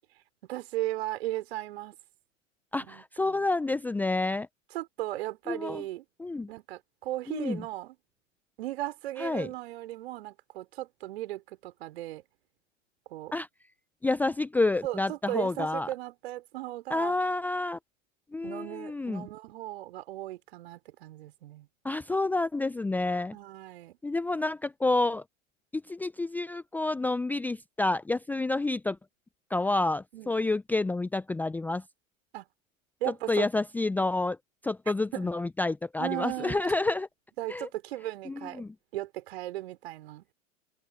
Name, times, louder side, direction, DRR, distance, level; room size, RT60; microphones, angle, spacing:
voice 1, 0.5-2.0 2.8-3.5 4.7-6.0 6.5-8.0 8.6-12.2 13.1-13.4 14.8-17.2 18.4-21.7 23.3-24.0 30.1-30.4 32.3-32.5 33.0-33.5 35.1-35.3 36.0-36.6 37.4-38.6 38.9-40.2, right 15 dB, 50° right, 4.5 m, -36 dB
voice 2, 2.7-4.5 5.5-5.8 6.2-6.5 7.3-7.6 9.2-9.5 13.3-13.5 14.0-15.9 16.9-17.8 18.3-19.3 21.8-23.3 24.0-25.2 25.7-29.0 29.5-31.8 33.3-34.4 34.6-37.1 37.5-37.7 38.3-38.7, left 2 dB, 5° left, 0.9 m, -29 dB
open air
figure-of-eight pair, 105°, 40 cm